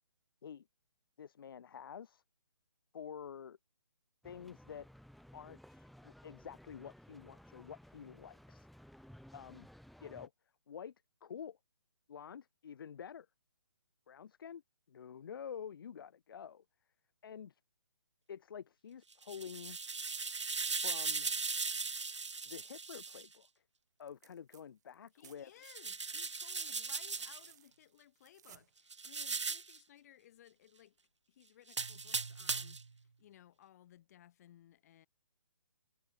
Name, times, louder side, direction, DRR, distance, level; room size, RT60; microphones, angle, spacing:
voice 1, 1.2-2.2 2.9-3.6 4.2-4.9 5.3-8.7 9.3-9.7 10.0-10.3 10.7-10.9 11.2-11.6 12.1-13.3 14.1-14.6 14.9-16.6 17.2-17.6 18.3-19.8 20.8-21.3 22.4-23.5 24.0-25.5, left 8 dB, 50° left, 1.2 m, -48 dB
sound 1, 4.2-10.3, equal, ahead, 2.7 m, -58 dB
sound 2, 19.1-23.3 25.6-27.5 28.9-29.8 31.7-32.9, right 4 dB, 90° right, 1.4 m, -38 dB
sound 3, 24.0-24.6 24.9-28.7 30.4-30.5, right 10 dB, 40° right, 2.4 m, -61 dB
voice 2, 25.1-31.0 31.3-35.1, left 12 dB, 35° left, 3.8 m, -61 dB
hypercardioid pair, 160°, 15 cm